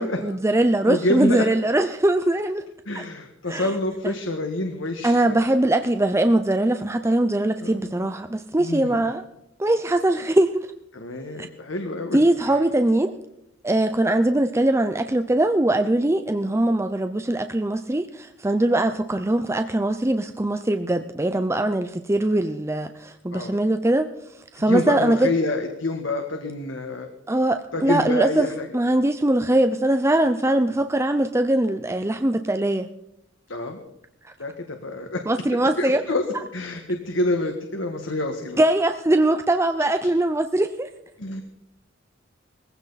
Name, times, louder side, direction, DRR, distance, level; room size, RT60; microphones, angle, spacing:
voice 1, 0.0-2.6 2.9-3.0 3.5-3.7 4.0-4.2 5.0-9.2 9.6-10.7 12.1-13.2 13.6-24.1 24.4-25.3 27.3-32.9 34.2-34.3 35.3-36.0 38.6-40.9, right 1 dB, 15° right, 7 dB, 0.6 m, -21 dB
voice 2, 0.8-1.4 2.9-5.4 7.6-7.8 8.6-9.0 10.9-12.2 23.3-23.5 24.6-27.1 27.7-28.7 33.5-33.8 34.4-35.2 35.8-36.2 36.5-38.6 41.2-41.4, left 1 dB, 90° left, 4 dB, 1.7 m, -27 dB
21.0 x 15.5 x 4.1 m, 0.82 s
head